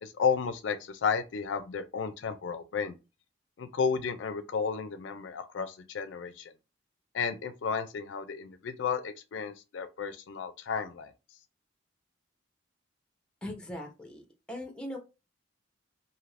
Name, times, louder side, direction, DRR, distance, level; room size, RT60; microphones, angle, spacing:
voice 1, 0.0-2.9 3.6-6.5 7.1-11.1, left 6 dB, 75° left, 0.4 m, -32 dB
voice 2, 13.4-14.2 14.5-15.0, left 1 dB, 5° left, 0.7 m, -39 dB
2.7 x 2.5 x 3.1 m
head